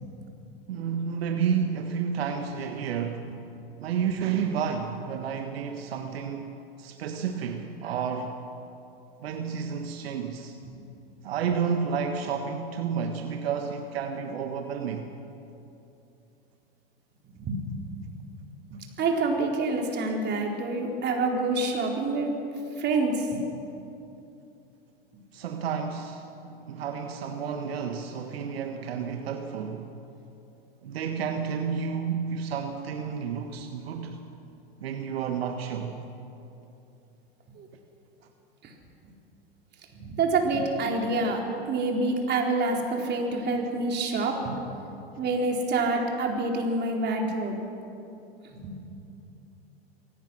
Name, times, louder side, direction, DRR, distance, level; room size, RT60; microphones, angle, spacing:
voice 1, 0.7-3.3 3.8-6.5 6.8-8.4 9.2-10.6 11.2-15.1 25.3-26.3 26.7-30.0 30.8-34.2 34.8-36.0, right 6 dB, 75° right, 5 dB, 1.5 m, -31 dB
voice 2, 18.7-22.3 22.8-23.4 37.6-37.7 38.6-38.7 39.9-44.5 45.2-47.5 48.4-48.7, right 3 dB, 35° right, 1 dB, 4.1 m, -27 dB
24.0 x 17.5 x 6.3 m, 2.8 s
hypercardioid pair, 100°, 31 cm